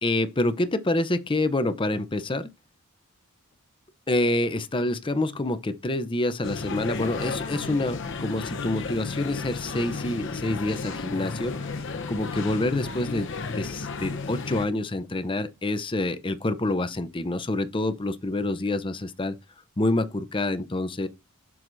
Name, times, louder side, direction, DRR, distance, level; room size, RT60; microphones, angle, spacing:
voice 1, 0.0-2.5 4.1-11.5 12.1-19.4 19.8-21.1, left 2 dB, 25° left, 0.6 m, -27 dB
sound 1, 6.4-14.7, left 4 dB, 55° left, 0.8 m, -33 dB
7.6 x 6.2 x 2.6 m
head